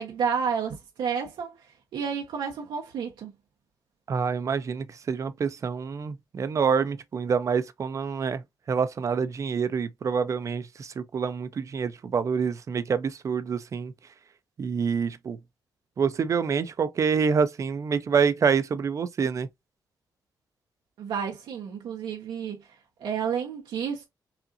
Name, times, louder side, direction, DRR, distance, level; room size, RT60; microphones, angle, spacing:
voice 1, 0.0-1.5 1.9-3.3 21.0-22.6 23.0-24.1, right 7 dB, 90° right, 1.0 m, -30 dB
voice 2, 4.1-8.4 8.7-13.9 14.6-15.4 16.0-19.5, right 6 dB, 45° right, 0.6 m, -27 dB
5.6 x 2.6 x 2.6 m
cardioid pair, 125°, 8 cm